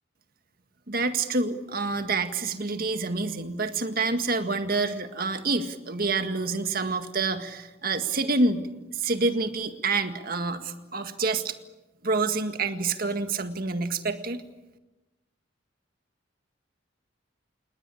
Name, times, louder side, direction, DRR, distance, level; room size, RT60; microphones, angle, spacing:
voice 1, 0.9-8.7 8.9-11.6 12.0-14.4, right 3 dB, 50° right, 8 dB, 1.9 m, -27 dB
28.5 x 20.0 x 8.6 m, 1.1 s
head